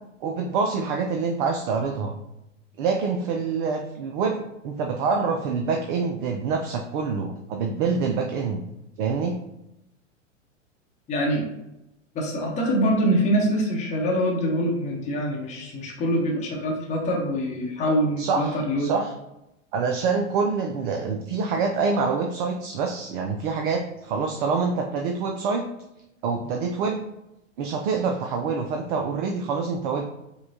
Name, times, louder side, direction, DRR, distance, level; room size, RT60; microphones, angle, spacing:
voice 1, 0.2-2.1 2.8-4.4 4.6-8.6 9.0-9.4 18.2-19.1 19.7-25.6 26.2-27.0 27.6-30.0, right 5 dB, 40° right, 3 dB, 0.5 m, -26 dB
voice 2, 11.1-11.5 12.1-18.9, equal, 20° left, -2 dB, 0.9 m, -24 dB
5.4 x 2.2 x 2.7 m, 0.88 s
hypercardioid pair, 105°, 39 cm